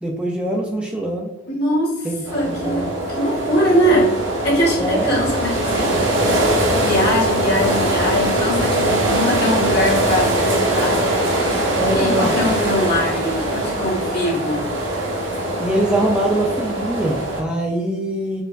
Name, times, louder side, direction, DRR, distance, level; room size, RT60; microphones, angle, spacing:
voice 1, 0.0-1.3 2.0-2.1 2.4-2.9 4.8-5.1 11.8-12.3 15.6-18.4, right 1 dB, 5° right, -1 dB, 0.3 m, -23 dB
voice 2, 1.5-4.2 4.4-6.1 6.7-11.0 11.8-14.6, equal, 55° left, -5 dB, 1.3 m, -22 dB
sound 1, 2.2-17.4, right 1 dB, 80° right, 0.9 m, -21 dB
4.4 x 2.4 x 2.3 m, 0.96 s
head